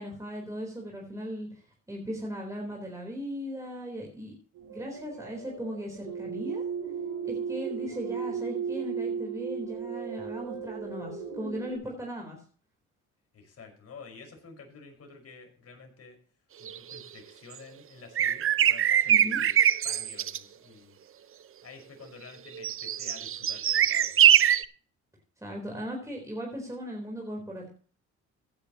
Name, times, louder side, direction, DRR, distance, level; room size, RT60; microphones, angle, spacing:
voice 1, 0.0-1.6 1.9-4.3 4.7-6.6 7.2-12.4 19.1-19.4 25.4-27.7, equal, 10° right, -1 dB, 4.2 m, -37 dB
sound 1, 4.5-11.8, right 6 dB, 80° right, 7.2 m, -35 dB
voice 2, 13.3-16.2 16.6-19.6 19.8-21.0 21.6-24.5, left 4 dB, 50° left, 3 dB, 5.6 m, -49 dB
sound 2, 16.7-17.0 18.2-20.4 22.5-24.6, right 10 dB, 40° right, 0.6 m, -23 dB
15.5 x 10.0 x 3.1 m, 0.43 s
supercardioid pair, 80°, 32 cm